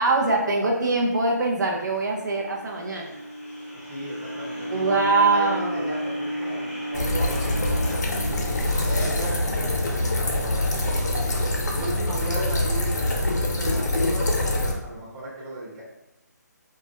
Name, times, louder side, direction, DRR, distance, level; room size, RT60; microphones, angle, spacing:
voice 1, 0.0-3.1 4.7-6.0, right 3 dB, 80° right, -1 dB, 0.5 m, -23 dB
sound 1, 2.0-10.2, equal, 5° left, 0.7 m, -34 dB
voice 2, 3.7-8.5 8.8-11.3 11.7-14.3 14.8-15.8, right 1 dB, 20° right, -8 dB, 0.9 m, -36 dB
sound 2, 6.9-14.7, left 1 dB, 70° left, 0.6 m, -24 dB
2.2 x 2.0 x 2.7 m, 0.94 s
figure-of-eight pair, 155°, 10 cm